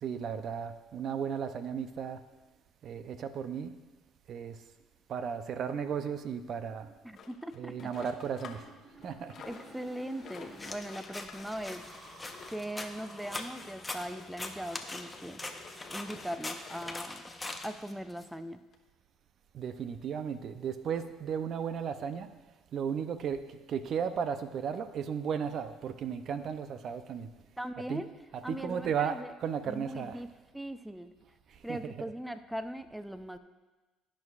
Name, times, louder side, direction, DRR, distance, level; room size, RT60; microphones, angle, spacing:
voice 1, 0.0-2.2 2.8-3.7 4.3-4.6 5.1-6.9 7.6-8.6 9.0-9.3 19.5-22.3 22.7-27.3 27.9-28.0 28.5-30.2 31.5-32.1, right 7 dB, 55° right, 10 dB, 0.6 m, -35 dB
sound 1, 4.8-4.9 5.2-5.4 5.6-10.8 11.2-14.0, right 1 dB, 25° right, 3.2 m, -55 dB
voice 2, 7.0-7.9 9.4-11.9 12.5-15.4 15.9-17.2 17.6-18.6 27.6-28.1 28.4-29.3 29.6-30.3 30.5-31.1 31.6-33.4, equal, 5° right, 11 dB, 0.5 m, -40 dB
sound 2, 7.1-8.7 9.0-17.2 17.8-17.9 18.2-18.3 18.7-18.8, left 6 dB, 50° left, 1.1 m, -52 dB
sound 3, 10.6-18.3, left 2 dB, 15° left, 1.0 m, -42 dB
17.0 x 6.3 x 2.5 m, 1.2 s
hypercardioid pair, 65°, 0 cm